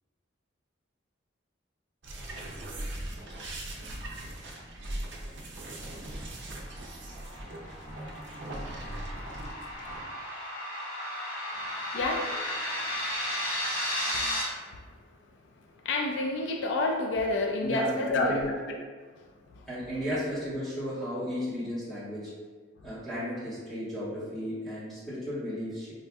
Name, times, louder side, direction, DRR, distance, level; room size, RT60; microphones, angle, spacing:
sound 1, 2.0-10.1, right 1 dB, 65° right, 0.5 m, -40 dB
sound 2, 6.7-14.4, left 1 dB, 40° left, 1.5 m, -34 dB
voice 1, 11.9-13.0 14.1-14.8 15.8-18.8 19.5-19.6, left 2 dB, 65° left, 2 dB, 0.3 m, -30 dB
voice 2, 17.6-18.5 19.7-22.3 22.8-25.9, equal, ahead, -12 dB, 1.2 m, -34 dB
4.0 x 2.5 x 2.2 m, 1.5 s
head